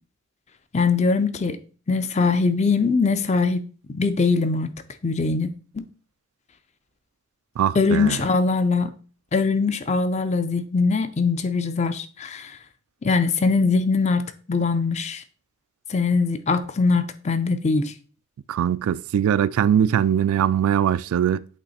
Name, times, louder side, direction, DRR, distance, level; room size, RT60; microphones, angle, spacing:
voice 1, 0.7-1.6 1.9-4.7 5.0-5.5 5.7-5.9 7.8-8.9 9.3-12.5 13.0-15.2 15.9-17.9, left 4 dB, 30° left, 0.4 m, -22 dB
voice 2, 7.6-8.2 18.5-21.5, right 9 dB, 90° right, 0.3 m, -21 dB
8.2 x 3.1 x 4.2 m
head